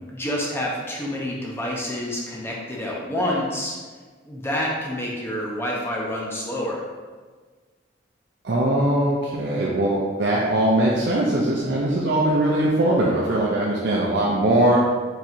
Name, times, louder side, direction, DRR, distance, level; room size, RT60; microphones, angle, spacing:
voice 1, 0.1-3.8 4.2-6.8, left 1 dB, 10° left, -3 dB, 0.7 m, -28 dB
voice 2, 8.4-14.8, right 1 dB, 60° right, -4 dB, 0.5 m, -21 dB
4.6 x 4.1 x 2.6 m, 1.4 s
head